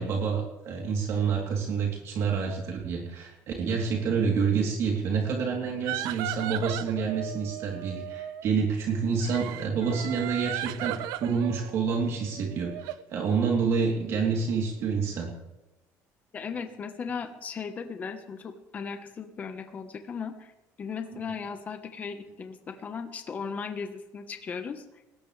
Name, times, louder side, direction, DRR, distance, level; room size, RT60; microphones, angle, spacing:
voice 1, 0.0-15.3, right 5 dB, 45° right, -1 dB, 3.2 m, -28 dB
sound 1, 5.9-8.5 9.2-13.0, right 14 dB, 80° right, 0.8 m, -36 dB
voice 2, 16.3-20.5 20.8-24.8, left 5 dB, 25° left, 7 dB, 1.2 m, -37 dB
21.0 x 17.5 x 3.3 m, 0.99 s
cardioid pair, 180°, 6 cm